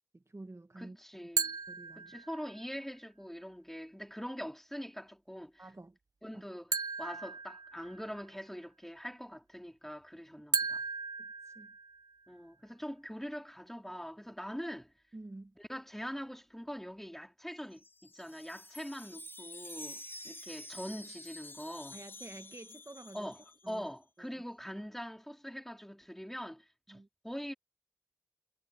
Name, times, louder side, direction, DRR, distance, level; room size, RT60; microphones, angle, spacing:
voice 1, 0.1-1.0 1.7-2.2 5.6-6.0 6.3-6.4 11.2-11.7 15.1-15.5 21.9-23.3 23.6-23.9 24.2-24.4 24.7-24.8 26.9-27.1, right 2 dB, 50° right, 0.9 m, -50 dB
voice 2, 0.8-1.6 2.0-5.7 6.2-10.8 12.3-14.9 15.6-22.0 23.1-27.5, equal, 5° left, 3.0 m, -43 dB
sound 1, 1.4-2.7 6.7-8.2 10.5-12.2, right 4 dB, 80° right, 0.7 m, -36 dB
Wind chime, 17.6-23.8, left 1 dB, 40° left, 3.6 m, -49 dB
wide cardioid pair, 50°, 6 cm